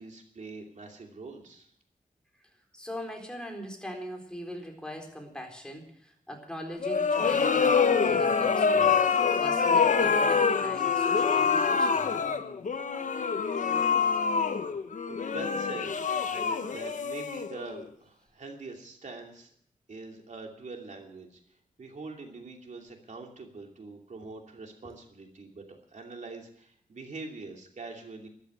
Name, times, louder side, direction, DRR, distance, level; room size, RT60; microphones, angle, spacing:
voice 1, 0.0-1.7 15.0-19.5 19.9-21.4 21.8-25.6 25.9-28.3, right 3 dB, 60° right, 2 dB, 2.8 m, -43 dB
voice 2, 2.7-8.9 9.4-12.1 24.8-24.9, equal, 5° left, 2 dB, 3.9 m, -41 dB
sound 1, 6.8-17.8, left 5 dB, 60° left, 1.1 m, -25 dB
13.5 x 11.5 x 7.9 m, 0.65 s
wide cardioid pair, 110°, 14 cm